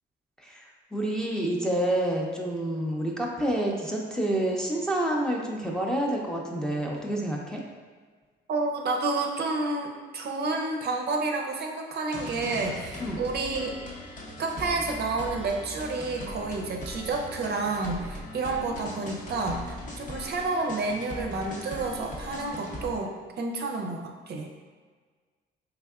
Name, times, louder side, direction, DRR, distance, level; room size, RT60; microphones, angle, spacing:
voice 1, 0.4-7.6 13.0-13.2, right 1 dB, 5° left, -2 dB, 0.5 m, -28 dB
voice 2, 8.5-13.7 14.4-24.5, right 3 dB, 55° right, 2 dB, 0.5 m, -30 dB
sound 1, 12.1-23.0, left 1 dB, 40° left, 0.7 m, -40 dB
3.5 x 3.3 x 2.3 m, 1.5 s
cardioid pair, 90°, 20 cm